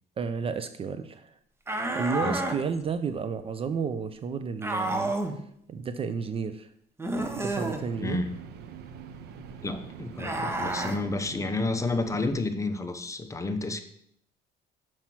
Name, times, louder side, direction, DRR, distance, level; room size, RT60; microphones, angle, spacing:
voice 1, 0.2-1.3 1.9-5.1 5.7-6.7 7.1-8.2 12.3-12.4, right 5 dB, 35° right, 11 dB, 0.4 m, -32 dB
sound 1, 1.7-2.6 4.6-5.4 7.0-7.8 10.2-11.0, right 2 dB, 15° right, 0.8 m, -30 dB
sound 2, 7.1-12.3, right 7 dB, 75° right, 0.7 m, -44 dB
voice 2, 8.0-8.3 9.6-13.8, left 2 dB, 20° left, 9 dB, 0.7 m, -30 dB
5.7 x 4.5 x 6.0 m, 0.70 s
cardioid pair, 110°, 17 cm